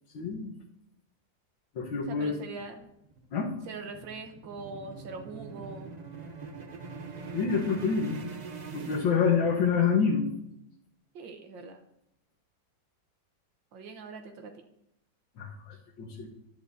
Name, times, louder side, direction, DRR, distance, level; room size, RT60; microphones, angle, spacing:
voice 1, 0.1-0.5 1.8-2.4 3.3-3.5 7.3-8.2 8.7-10.3 15.4-16.3, left 6 dB, 85° left, -3 dB, 2.1 m, -27 dB
voice 2, 2.1-2.8 3.7-5.9 8.7-9.2 11.1-11.8 13.7-14.5, right 4 dB, 80° right, 5 dB, 1.8 m, -42 dB
sound 1, 2.6-9.8, right 4 dB, 50° right, 0.4 m, -43 dB
14.0 x 11.0 x 2.8 m, 0.80 s
omnidirectional pair, 2.1 m